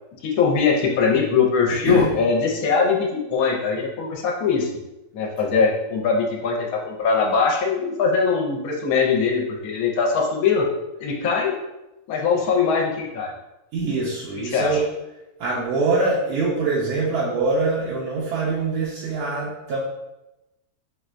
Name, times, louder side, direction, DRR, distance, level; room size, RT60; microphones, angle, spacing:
voice 1, 0.2-4.7 5.1-10.7 11.0-11.5 12.1-13.3 14.5-14.7, left 5 dB, 75° left, 0 dB, 1.0 m, -21 dB
voice 2, 1.7-2.1 13.7-14.9 15.4-19.8, right 3 dB, 80° right, -5 dB, 1.1 m, -24 dB
4.3 x 2.1 x 2.5 m, 0.96 s
omnidirectional pair, 1.6 m